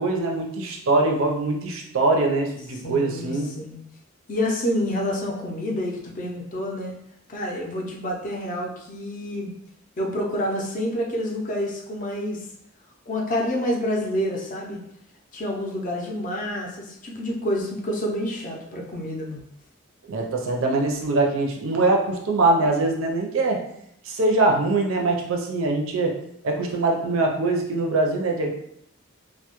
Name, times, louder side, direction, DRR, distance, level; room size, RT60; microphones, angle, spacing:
voice 1, 0.0-3.5 20.1-23.6 24.0-26.2 26.4-28.5, right 2 dB, 70° right, 1 dB, 0.5 m, -23 dB
voice 2, 2.8-3.8 4.3-6.9 7.3-9.5 10.0-12.4 13.1-14.8 15.3-19.4, left 1 dB, 40° left, -1 dB, 0.5 m, -28 dB
2.2 x 2.1 x 2.9 m, 0.75 s
head